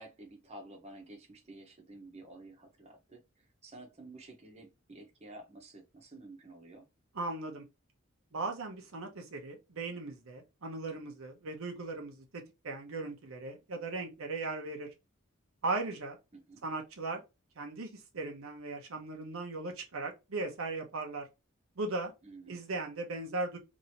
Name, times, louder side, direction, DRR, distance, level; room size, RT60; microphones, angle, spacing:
voice 1, 0.0-6.9 16.3-16.6 22.2-22.6, right 2 dB, 30° right, 0.9 m, -51 dB
voice 2, 7.1-7.6 8.3-14.9 15.6-16.2 16.6-17.2 17.6-21.3 21.8-22.1 22.5-23.6, right 3 dB, 85° right, 0.8 m, -38 dB
3.0 x 2.7 x 2.7 m
head